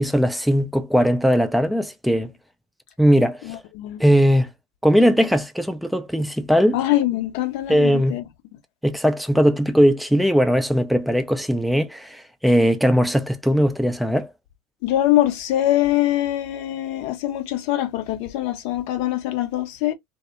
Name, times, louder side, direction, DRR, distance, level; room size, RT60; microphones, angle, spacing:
voice 1, 0.0-2.3 3.0-3.6 4.0-4.5 4.8-6.8 7.7-8.2 8.8-14.3, equal, ahead, 0.4 m, -19 dB
voice 2, 3.4-4.0 6.7-8.2 14.8-19.9, left 14 dB, 55° left, 0.5 m, -23 dB
2.1 x 2.1 x 2.8 m
hypercardioid pair, 85°, 0 cm